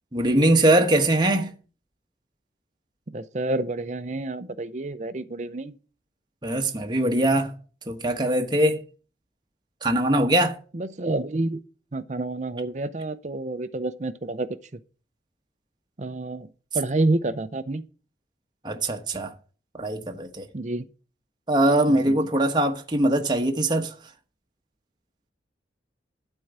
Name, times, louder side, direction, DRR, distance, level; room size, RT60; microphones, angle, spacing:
voice 1, 0.1-1.5 6.4-7.5 7.9-8.8 9.8-10.6 18.6-19.3 19.7-20.5 21.5-23.9, right 1 dB, 25° right, 1.0 m, -22 dB
voice 2, 3.1-5.8 10.7-11.6 11.9-14.5 16.0-16.5 16.7-17.8 20.5-20.9 21.9-22.2, right 2 dB, 40° right, 0.6 m, -28 dB
12.0 x 4.6 x 7.9 m
head